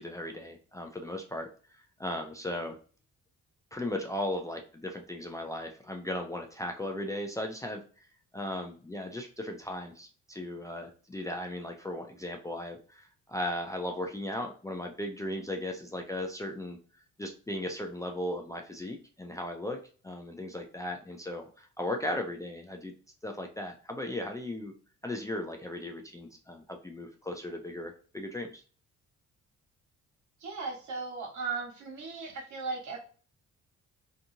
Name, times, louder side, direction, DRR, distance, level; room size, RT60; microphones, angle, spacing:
voice 1, 0.0-2.8 3.7-8.1 8.3-16.8 17.2-22.9 23.2-24.7 25.0-28.6, left 1 dB, 10° left, 2 dB, 0.4 m, -37 dB
voice 2, 30.4-33.0, right 4 dB, 70° right, 1 dB, 1.3 m, -37 dB
2.7 x 2.5 x 2.6 m, 0.39 s
cardioid pair, 90°, 30 cm